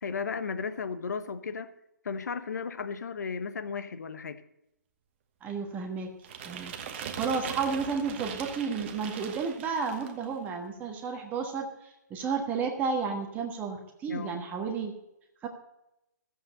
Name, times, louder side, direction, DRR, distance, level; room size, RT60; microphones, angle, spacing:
voice 1, 0.0-1.7 2.0-4.4 14.1-14.5, left 5 dB, 60° left, 1.0 m, -35 dB
voice 2, 5.4-6.1 6.4-14.9 15.4-15.5, right 5 dB, 15° right, 1.3 m, -32 dB
sound 1, 6.2-10.2, right 7 dB, 35° right, 1.2 m, -40 dB
13.5 x 7.9 x 6.5 m
figure-of-eight pair, 140°, 10 cm